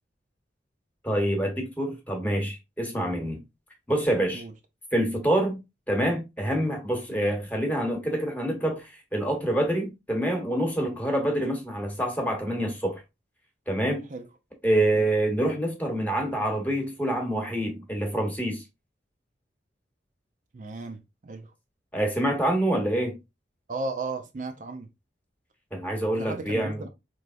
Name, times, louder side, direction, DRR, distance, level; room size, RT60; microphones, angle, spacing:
voice 1, 1.0-3.4 3.9-4.4 4.9-5.6 5.9-13.0 13.7-14.1 14.6-18.6 21.9-23.2 25.7-26.8, right 1 dB, 10° left, 1.0 m, -26 dB
voice 2, 20.5-21.5 23.7-24.9 26.2-26.9, right 3 dB, 45° right, 0.4 m, -35 dB
4.5 x 3.2 x 2.5 m
head